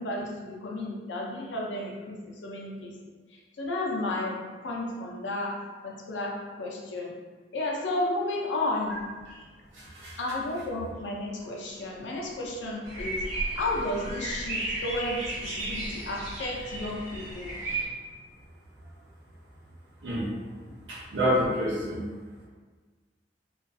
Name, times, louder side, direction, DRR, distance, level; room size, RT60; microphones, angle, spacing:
voice 1, 0.0-2.9 3.6-4.4 4.6-7.1 7.5-9.0 10.2-13.2 13.6-17.5, left 2 dB, 90° left, -1 dB, 0.5 m, -32 dB
voice 2, 9.8-10.1 20.0-20.2 21.1-22.0, equal, 85° right, -8 dB, 0.7 m, -27 dB
sound 1, 12.8-17.8, right 2 dB, 40° right, 1.0 m, -34 dB
2.3 x 2.3 x 2.6 m, 1.4 s
head